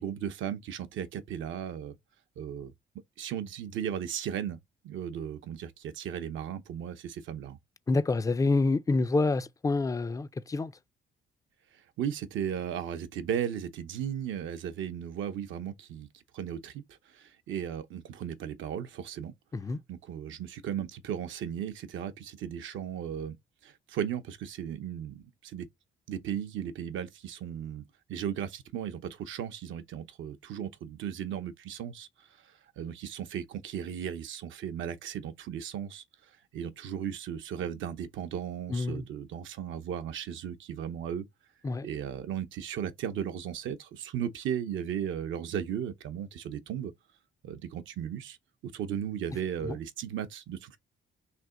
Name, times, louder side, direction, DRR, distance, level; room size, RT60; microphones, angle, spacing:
voice 1, 0.0-2.0 2.4-2.7 3.2-7.6 11.7-19.3 19.9-23.4 23.6-25.7 26.1-27.8 28.1-41.3 41.8-46.9 47.4-48.4 48.6-50.8, right 9 dB, 75° right, 0.7 m, -36 dB
voice 2, 7.9-10.7 19.5-19.8 38.7-39.1 41.6-41.9 49.6-49.8, left 3 dB, 15° left, 0.3 m, -27 dB
3.3 x 2.8 x 3.7 m
cardioid pair, 90°, 20 cm